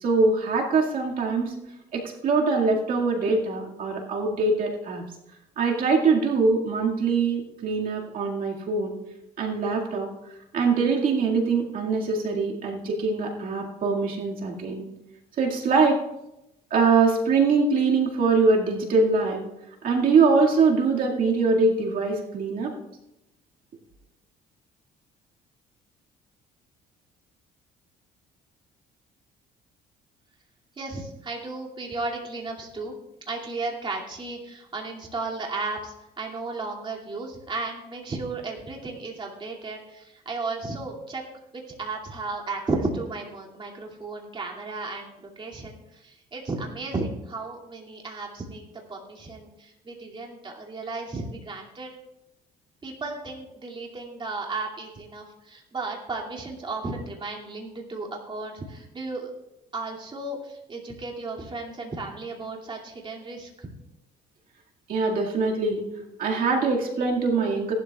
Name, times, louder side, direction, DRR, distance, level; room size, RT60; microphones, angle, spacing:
voice 1, 0.0-1.5 1.9-5.0 5.6-8.9 9.4-10.1 10.5-14.9 15.4-16.0 16.7-19.4 19.8-22.7 64.9-65.9 66.2-67.7, right 4 dB, 55° right, -1 dB, 2.1 m, -23 dB
voice 2, 30.8-32.9 33.3-41.2 41.5-48.6 48.9-51.9 52.8-59.3 59.7-63.7, right 3 dB, 30° right, -1 dB, 2.5 m, -34 dB
18.0 x 12.0 x 2.4 m, 0.90 s
cardioid pair, 110°, 17 cm